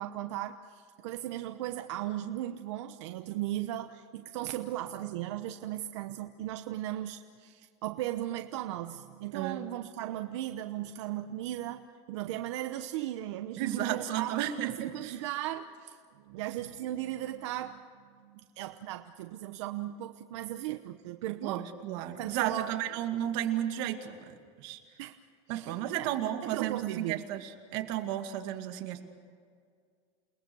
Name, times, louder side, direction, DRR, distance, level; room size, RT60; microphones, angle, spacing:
voice 1, 0.0-14.3 14.6-16.0 16.3-17.8 18.2-21.7 22.2-22.7 25.0-25.1 25.5-26.1 26.4-27.2, right 13 dB, 80° right, 7 dB, 1.0 m, -37 dB
voice 2, 13.6-14.7 21.4-24.8 25.5-29.0, right 11 dB, 60° right, 6 dB, 2.4 m, -33 dB
29.5 x 19.5 x 6.3 m, 2.1 s
supercardioid pair, 155°, 15 cm